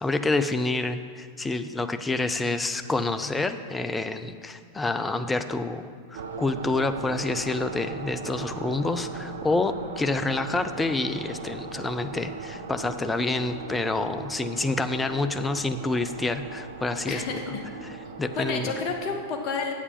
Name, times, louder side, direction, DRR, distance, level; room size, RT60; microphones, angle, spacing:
voice 1, 0.0-17.4 18.2-18.7, left 3 dB, 10° left, 10 dB, 0.4 m, -28 dB
sound 1, 6.1-19.2, right 5 dB, 65° right, 0.6 m, -38 dB
voice 2, 17.1-17.5 18.3-19.7, left 4 dB, 40° left, 3 dB, 1.1 m, -30 dB
8.2 x 7.3 x 5.3 m, 2.1 s
figure-of-eight pair, 90°, 0 cm